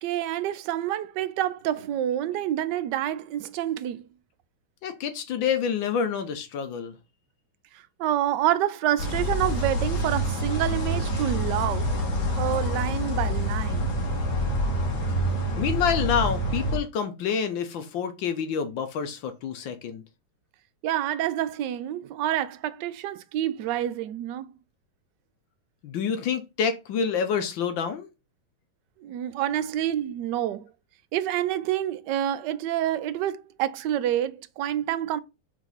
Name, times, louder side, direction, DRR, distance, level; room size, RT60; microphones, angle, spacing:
voice 1, 0.0-4.0 8.0-11.9 12.4-14.0 20.8-24.5 29.0-30.7 31.1-35.2, right 12 dB, 75° right, 1.0 m, -28 dB
voice 2, 4.8-6.9 15.6-20.0 25.8-28.1, left 7 dB, 70° left, 1.4 m, -27 dB
sound 1, 9.0-16.8, equal, 50° left, 2.1 m, -27 dB
4.9 x 3.7 x 5.3 m
omnidirectional pair, 2.4 m